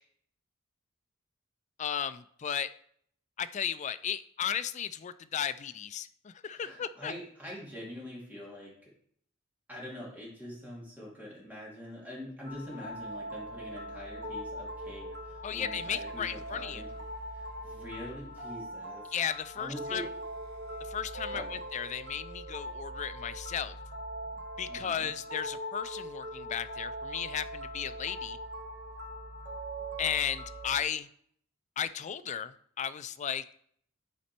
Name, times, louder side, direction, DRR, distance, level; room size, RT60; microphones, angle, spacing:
voice 1, 1.8-2.7 3.4-7.1 15.4-16.8 19.1-20.1 20.9-23.8 24.6-28.4 30.0-31.1 31.8-33.5, left 8 dB, 35° left, 12 dB, 0.3 m, -35 dB
voice 2, 6.5-8.9 9.7-16.9 17.3-19.1 19.5-20.1 21.3-21.5 24.3-24.4 24.7-25.1, equal, 10° right, -5 dB, 2.7 m, -44 dB
sound 1, 12.4-30.8, equal, 55° right, 1.1 m, -41 dB
11.5 x 4.3 x 4.3 m, 0.64 s
head